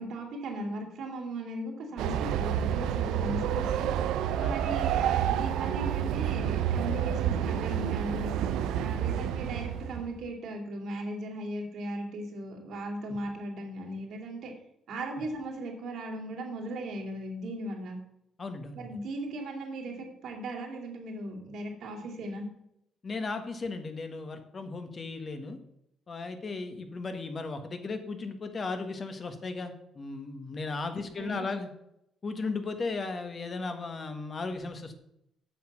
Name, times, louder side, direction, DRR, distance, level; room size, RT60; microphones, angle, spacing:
voice 1, 0.0-3.9 4.3-8.3 8.7-14.5 14.9-18.0 18.7-22.4 30.9-31.5, right 1 dB, 75° right, 1 dB, 2.7 m, -37 dB
Train, 2.0-10.1, right 9 dB, 90° right, 0.5 m, -29 dB
voice 2, 18.4-18.9 23.0-25.6 26.1-31.7 32.2-34.9, left 3 dB, 40° left, 7 dB, 1.4 m, -36 dB
8.4 x 5.9 x 6.1 m, 0.78 s
cardioid pair, 90°, 0 cm